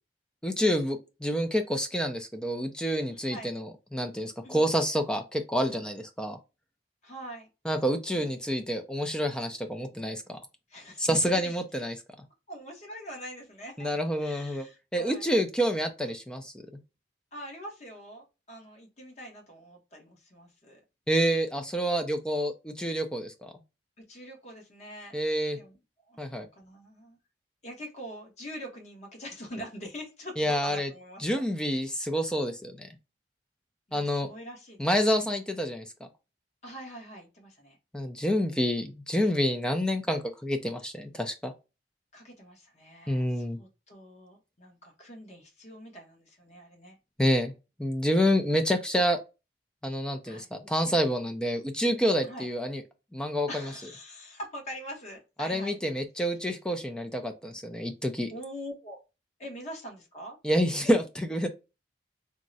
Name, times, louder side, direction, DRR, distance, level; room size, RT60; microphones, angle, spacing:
voice 1, 0.4-6.4 7.6-10.4 11.0-12.0 13.8-14.7 14.9-16.5 21.1-23.5 25.1-25.6 26.2-26.5 30.4-30.9 31.2-32.9 33.9-34.3 34.8-35.9 37.9-41.5 43.1-43.6 47.2-47.5 47.8-49.2 49.8-52.8 53.1-53.7 55.4-58.3 60.4-61.5, equal, 5° left, 0.4 m, -28 dB
voice 2, 3.1-3.6 4.4-4.7 7.0-7.5 8.1-8.6 10.7-11.5 12.5-13.9 14.2-15.3 17.3-20.8 24.0-25.2 25.5-25.8 26.0-27.2 27.6-31.4 33.9-34.8 36.6-37.8 42.1-47.0 50.2-50.5 52.2-52.5 53.5-55.8 56.2-56.3 58.3-59.0 59.4-60.4, equal, 40° left, 1.0 m, -44 dB
3.5 x 2.1 x 2.6 m
head